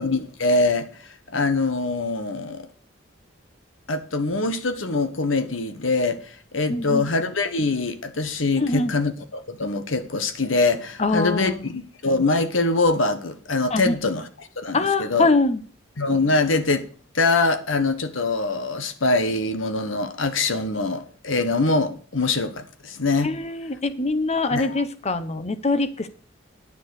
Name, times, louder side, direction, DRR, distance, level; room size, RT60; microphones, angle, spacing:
voice 1, 0.0-2.7 3.9-14.3 14.6-15.3 16.0-16.9 17.1-23.3 24.5-24.8, left 3 dB, 80° left, 1.4 m, -23 dB
voice 2, 6.7-7.1 8.6-8.9 11.0-11.6 13.7-14.0 14.7-15.6 23.2-26.1, left 3 dB, 35° left, 1.0 m, -23 dB
10.0 x 7.2 x 6.6 m
head